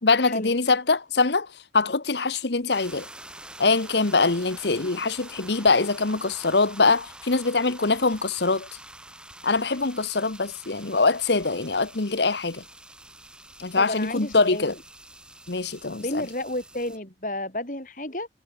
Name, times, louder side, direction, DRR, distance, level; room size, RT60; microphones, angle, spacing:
voice 1, 0.0-3.0 3.6-8.7 9.4-12.6 13.6-14.7 15.5-16.3, left 3 dB, 75° left, 1.3 m, -23 dB
sound 1, 2.7-17.0, right 1 dB, 5° right, 4.3 m, -46 dB
voice 2, 13.7-14.7 16.0-18.3, left 1 dB, 45° left, 5.0 m, -31 dB
head